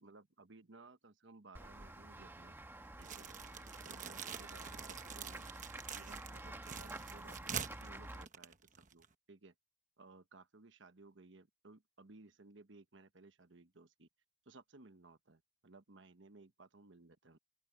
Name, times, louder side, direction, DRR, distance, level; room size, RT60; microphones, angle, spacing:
voice 1, 0.0-2.6 3.0-5.5 5.9-9.5 10.0-14.1 14.5-17.4, right 3 dB, 65° right, 1.2 m, -60 dB
Run / Walk footsteps / Bell, 1.5-8.3, right 1 dB, 10° right, 1.3 m, -50 dB
sound 1, 3.0-9.1, right 7 dB, 40° right, 1.2 m, -46 dB
open air
head